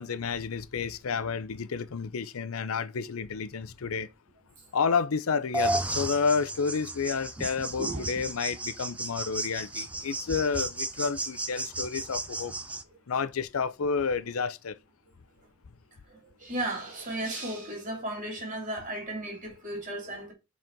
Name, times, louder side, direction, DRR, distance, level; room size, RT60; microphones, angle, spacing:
voice 1, 0.0-4.1 4.7-12.5 13.1-14.8, left 5 dB, 75° left, 0.6 m, -30 dB
sound 1, 5.5-12.8, right 2 dB, 5° right, 0.4 m, -34 dB
voice 2, 16.4-20.3, right 1 dB, 35° right, 2.7 m, -35 dB
7.6 x 4.2 x 4.5 m
head